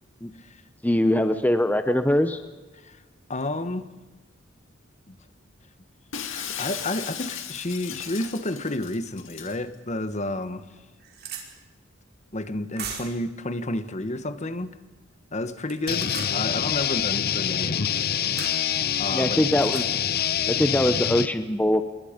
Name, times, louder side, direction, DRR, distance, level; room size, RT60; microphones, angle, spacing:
voice 1, 0.8-2.4 19.1-20.0 20.5-21.8, left 1 dB, 10° left, 0.8 m, -22 dB
voice 2, 3.3-3.9 5.1-5.2 6.3-10.7 12.3-14.8 15.3-18.0 19.0-19.4, left 1 dB, 35° left, 1.3 m, -31 dB
Shatter, 6.1-9.6, left 8 dB, 80° left, 2.2 m, -36 dB
sound 1, 9.8-9.9 10.4-10.5 10.7-11.4 12.8-13.2 15.6-16.3 18.4-18.6 19.5-19.9, right 7 dB, 55° right, 4.8 m, -37 dB
sound 2, 15.9-21.3, left 9 dB, 50° left, 0.7 m, -26 dB
27.0 x 22.5 x 5.2 m
head